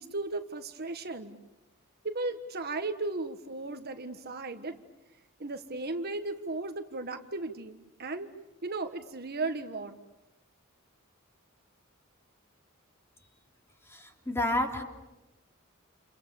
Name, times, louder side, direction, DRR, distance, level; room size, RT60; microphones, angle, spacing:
voice 1, 0.0-1.4 2.0-4.8 5.4-8.3 8.6-10.0, right 3 dB, 45° right, 7 dB, 1.4 m, -35 dB
voice 2, 13.9-14.8, left 1 dB, 10° left, 3 dB, 3.2 m, -30 dB
29.5 x 29.0 x 7.0 m, 0.98 s
head